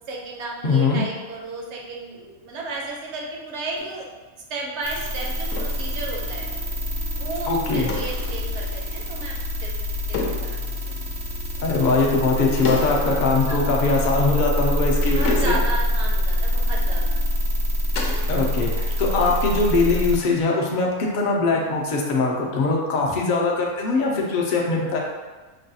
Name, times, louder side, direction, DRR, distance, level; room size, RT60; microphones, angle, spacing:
voice 1, 0.1-4.1 4.4-6.5 7.2-10.6 10.8-11.0 13.5-13.8 14.1-14.3 15.0-17.2 18.1-18.3, right 2 dB, 60° right, -1 dB, 0.9 m, -33 dB
voice 2, 0.6-1.0 7.5-7.9 11.6-15.6 18.3-25.0, left 3 dB, 50° left, -2 dB, 0.6 m, -21 dB
sound 1, 3.8-4.0 5.5-5.8 7.9-8.5 10.1-10.6 12.6-13.1 13.4-13.5 15.0-15.8 17.9-18.4 18.7-19.2 21.5-22.0, left 3 dB, 70° left, 0.9 m, -31 dB
sound 2, 4.8-20.2, left 1 dB, 85° right, 1.1 m, -25 dB
5.3 x 2.3 x 2.7 m, 1.2 s
omnidirectional pair, 1.4 m